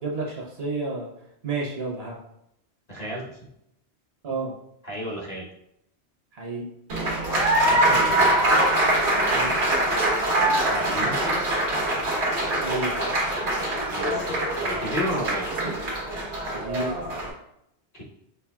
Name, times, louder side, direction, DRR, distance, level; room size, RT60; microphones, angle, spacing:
voice 1, 0.0-1.1 1.4-2.1 4.2-4.5 6.4-6.6 9.3-9.5 12.6-12.9 16.5-16.9, right 3 dB, 65° right, -1 dB, 1.2 m, -30 dB
voice 2, 2.9-3.3 4.8-5.5 7.6-8.3 10.6-11.4 13.9-15.5 17.9-18.0, equal, 40° left, -3 dB, 1.0 m, -32 dB
Applause, 6.9-17.3, right 1 dB, 85° right, 1.5 m, -23 dB
5.8 x 3.3 x 2.3 m, 0.78 s
omnidirectional pair, 1.1 m